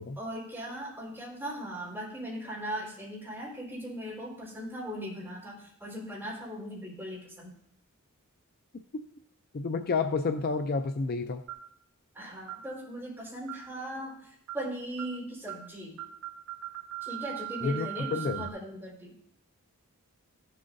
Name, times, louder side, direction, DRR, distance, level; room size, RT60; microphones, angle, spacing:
voice 1, 0.2-7.5 12.1-14.2 14.5-16.0 17.0-19.1, equal, 10° right, -7 dB, 3.8 m, -39 dB
voice 2, 9.5-11.4 17.6-18.4, left 4 dB, 40° left, 8 dB, 0.4 m, -30 dB
sound 1, 11.5-11.8 12.5-12.7 13.5-13.8 14.5-14.7 15.0-15.2 15.5-15.7 16.0-18.5, right 16 dB, 75° right, 0.7 m, -40 dB
15.0 x 7.7 x 2.6 m, 0.69 s
head